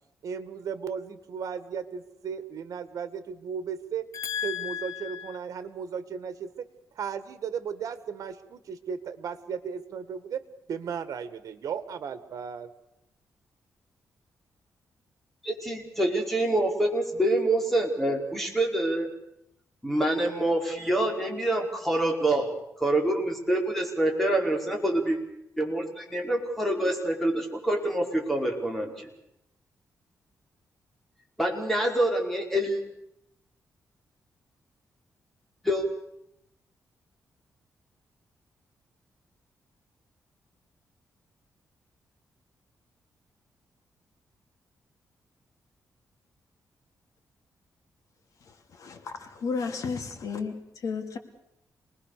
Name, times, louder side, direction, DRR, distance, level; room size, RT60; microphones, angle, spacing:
voice 1, 0.2-4.1 4.4-6.5 7.0-10.4 10.7-12.7, right 7 dB, 70° right, 12 dB, 1.8 m, -35 dB
voice 2, 4.1-5.3 48.8-51.2, left 6 dB, 70° left, 4 dB, 3.1 m, -33 dB
voice 3, 15.4-19.1 19.8-22.5 22.8-25.2 25.6-29.1 31.4-32.8 35.6-35.8, right 1 dB, 5° left, 1 dB, 5.0 m, -26 dB
27.5 x 20.0 x 6.8 m, 0.81 s
cardioid pair, 125°, 6 cm